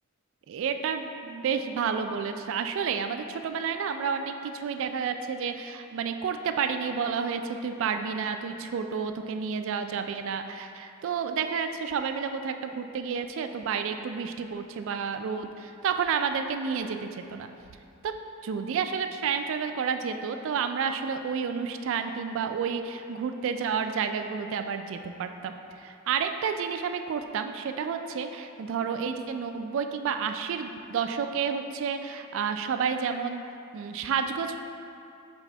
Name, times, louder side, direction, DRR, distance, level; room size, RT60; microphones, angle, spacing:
voice 1, 0.5-17.5 18.0-18.2 18.4-33.4 33.7-34.6, right 6 dB, 65° right, 7 dB, 0.3 m, -30 dB
6.0 x 3.5 x 4.5 m, 2.6 s
head